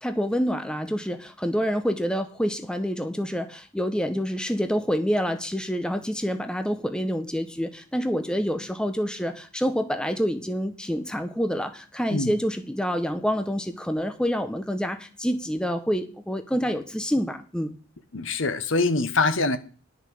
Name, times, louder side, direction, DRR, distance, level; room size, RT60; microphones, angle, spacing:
voice 1, 0.0-17.7, equal, 5° left, 0.8 m, -27 dB
voice 2, 18.1-19.6, left 3 dB, 70° left, 1.1 m, -24 dB
10.5 x 6.5 x 6.5 m
head